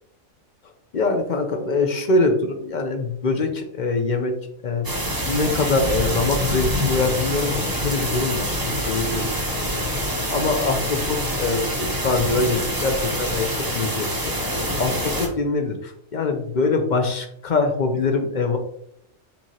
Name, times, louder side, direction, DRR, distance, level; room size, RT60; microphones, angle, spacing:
voice 1, 0.9-4.4 4.6-4.9 5.3-9.3 9.6-9.9 10.3-14.3 14.8-18.6, left 3 dB, 50° left, 5 dB, 0.6 m, -23 dB
sound 1, 4.8-15.3, equal, 20° right, 0.9 m, -25 dB
6.0 x 3.1 x 2.8 m, 0.71 s
omnidirectional pair, 1.4 m